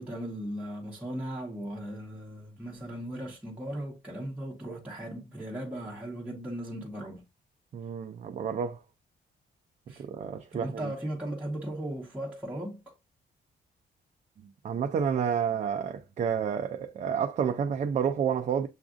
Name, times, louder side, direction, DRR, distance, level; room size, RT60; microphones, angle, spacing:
voice 1, 0.0-7.2 9.9-10.0 10.5-12.9, right 1 dB, 5° right, 1.0 m, -37 dB
voice 2, 7.7-8.8 10.0-10.9 14.6-18.7, right 7 dB, 40° right, 0.4 m, -30 dB
7.1 x 2.4 x 2.4 m
cardioid pair, 155°, 19 cm